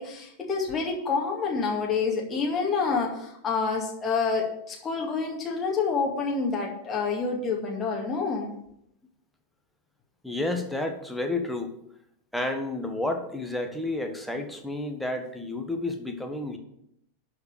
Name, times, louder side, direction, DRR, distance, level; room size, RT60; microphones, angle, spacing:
voice 1, 0.0-8.5, left 4 dB, 20° left, -2 dB, 2.2 m, -28 dB
voice 2, 10.2-11.7 12.3-16.6, left 2 dB, ahead, 3 dB, 1.5 m, -31 dB
11.5 x 5.0 x 6.6 m, 0.75 s
figure-of-eight pair, 90°, 0 cm